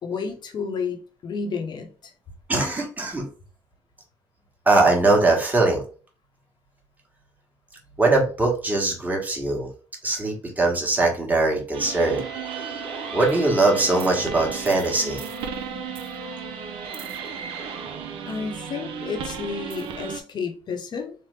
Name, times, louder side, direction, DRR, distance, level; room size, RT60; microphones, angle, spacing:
voice 1, 0.0-2.1 18.3-21.1, left 5 dB, 55° left, 0.8 m, -31 dB
voice 2, 2.5-3.3 4.7-5.8 8.0-9.7 10.0-12.2 12.6-12.7 13.1-15.3, right 2 dB, 20° right, 1.1 m, -21 dB
sound 1, 11.7-20.2, right 6 dB, 75° right, 0.4 m, -35 dB
Wind instrument woodwind instrument, 11.9-18.0, equal, 50° right, 1.1 m, -42 dB
3.2 x 2.0 x 3.2 m
supercardioid pair, 80°, 9 cm